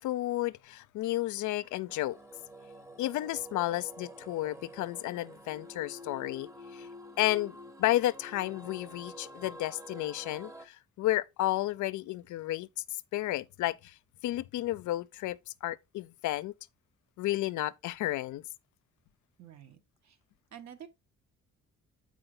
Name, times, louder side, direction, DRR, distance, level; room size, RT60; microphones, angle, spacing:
voice 1, 0.0-2.2 3.0-6.9 7.2-12.7 13.1-13.9 14.2-16.5 17.2-18.4, left 16 dB, 75° left, 0.5 m, -32 dB
sound 1, 1.9-10.7, equal, 10° right, 0.8 m, -48 dB
voice 2, 19.4-20.2 20.5-20.9, right 9 dB, 65° right, 1.3 m, -49 dB
7.8 x 4.7 x 3.8 m
cardioid pair, 90°, 30 cm